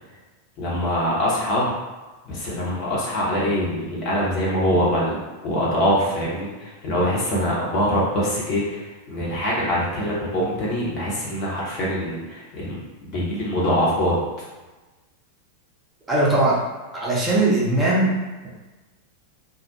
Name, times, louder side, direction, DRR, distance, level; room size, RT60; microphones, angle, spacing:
voice 1, 0.6-1.7 2.2-5.2 5.4-14.2, equal, 40° left, -6 dB, 0.8 m, -24 dB
voice 2, 16.1-16.6 16.9-18.2, right 2 dB, 15° right, -7 dB, 0.7 m, -19 dB
2.4 x 2.0 x 2.9 m, 1.2 s
figure-of-eight pair, 90°, 0 cm